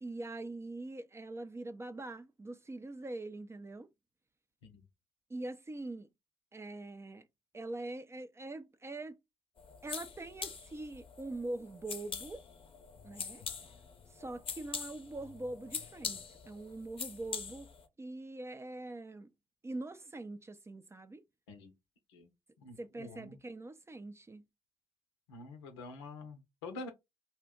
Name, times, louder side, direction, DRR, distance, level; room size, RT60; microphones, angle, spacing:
voice 1, 0.0-3.9 5.3-6.1 6.5-7.3 7.5-9.2 9.8-12.4 13.0-13.4 14.1-17.7 18.0-19.3 19.6-21.2 22.8-24.5, right 2 dB, 20° right, 0.5 m, -43 dB
sound 1, 9.6-17.9, left 5 dB, 40° left, 0.6 m, -44 dB
voice 2, 22.6-23.4 25.3-26.9, left 3 dB, 85° left, 0.6 m, -47 dB
2.6 x 2.1 x 3.5 m
hypercardioid pair, 40°, 14 cm